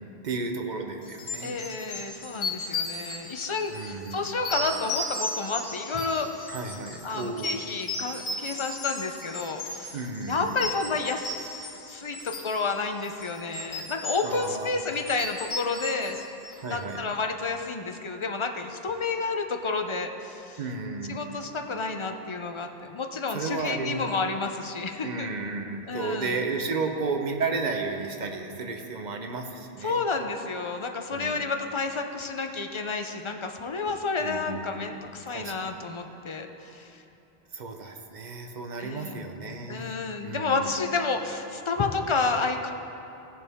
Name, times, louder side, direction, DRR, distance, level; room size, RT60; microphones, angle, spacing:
voice 1, 0.0-1.6 3.7-4.3 6.5-7.7 9.9-10.6 14.2-14.8 16.6-17.1 20.6-21.3 23.3-24.0 25.0-30.0 31.1-31.4 34.2-35.0 35.3-35.8 37.5-40.8, right 4 dB, 50° right, 4 dB, 0.9 m, -33 dB
sound 1, 1.1-16.9, left 2 dB, 75° left, 1.5 m, -36 dB
voice 2, 1.4-6.6 7.0-10.0 10.3-16.2 16.7-20.6 21.1-25.3 25.9-26.4 29.8-37.0 38.8-39.2 39.7-42.7, left 4 dB, 35° left, 5 dB, 0.5 m, -30 dB
15.5 x 6.9 x 3.5 m, 2.9 s
omnidirectional pair, 1.1 m